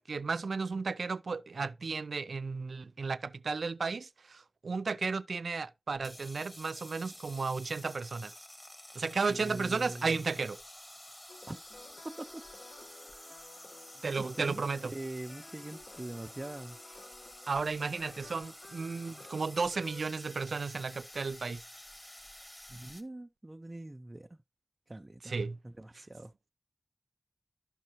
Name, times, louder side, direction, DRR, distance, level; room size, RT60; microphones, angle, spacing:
voice 1, 0.0-8.3 9.0-10.6 14.0-14.9 17.5-21.6 25.2-25.6, right 4 dB, 85° right, 0.3 m, -34 dB
sound 1, 6.0-23.0, left 1 dB, 25° left, 1.6 m, -51 dB
voice 2, 9.3-10.2 11.5-11.6 12.0-12.4 14.1-16.8 22.7-24.4 24.9-26.3, right 1 dB, 35° right, 0.5 m, -43 dB
sound 2, 11.3-20.0, left 3 dB, 75° left, 0.8 m, -54 dB
12.0 x 5.4 x 2.9 m
cardioid pair, 45°, 0 cm